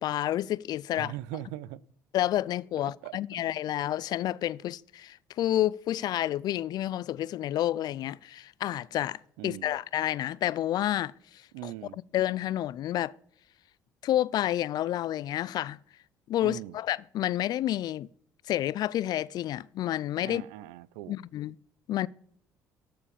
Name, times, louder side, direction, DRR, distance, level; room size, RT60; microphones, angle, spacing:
voice 1, 0.0-1.1 2.1-11.7 12.1-13.1 14.0-15.8 16.3-18.1 18.5-20.4 21.1-21.6 21.9-22.1, left 13 dB, 60° left, 0.3 m, -30 dB
voice 2, 0.9-1.8 2.8-3.2 9.4-9.7 11.5-12.0 16.4-16.8 20.2-21.1, right 14 dB, 85° right, 0.4 m, -40 dB
14.0 x 4.8 x 5.0 m
supercardioid pair, 65°, 8 cm